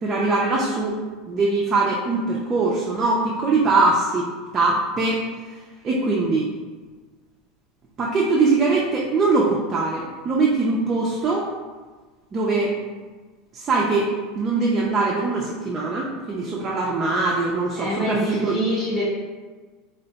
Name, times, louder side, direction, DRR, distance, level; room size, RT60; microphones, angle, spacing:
voice 1, 0.0-0.9 1.3-4.3 4.5-5.2 5.8-6.5 8.0-11.5 12.3-12.7 13.5-14.1 14.4-18.6, right 3 dB, 25° right, -3 dB, 0.4 m, -22 dB
voice 2, 17.8-19.0, equal, 10° left, -9 dB, 0.8 m, -25 dB
2.7 x 2.2 x 3.9 m, 1.4 s
supercardioid pair, 155°, 0 cm